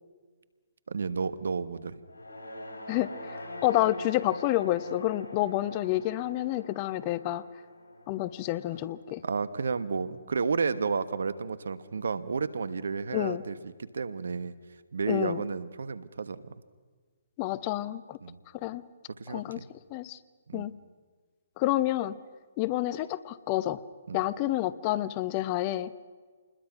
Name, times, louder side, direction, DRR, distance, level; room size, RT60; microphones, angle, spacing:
voice 1, 0.9-2.0 9.2-14.5 14.9-16.4 18.2-18.4 19.2-19.6 20.5-20.6 24.1-24.2, right 5 dB, 75° right, 15 dB, 1.2 m, -32 dB
sound 1, 2.0-10.4, left 1 dB, 90° left, 5.5 m, -44 dB
voice 2, 2.9-7.4 8.1-9.2 13.1-13.4 15.1-15.4 17.4-18.2 18.5-18.8 19.3-19.6 19.9-20.2 20.5-20.7 21.6-22.2 22.6-23.8 24.1-25.9, left 15 dB, 35° left, 17 dB, 0.8 m, -29 dB
27.5 x 21.0 x 6.0 m, 1.5 s
hypercardioid pair, 140°, 0 cm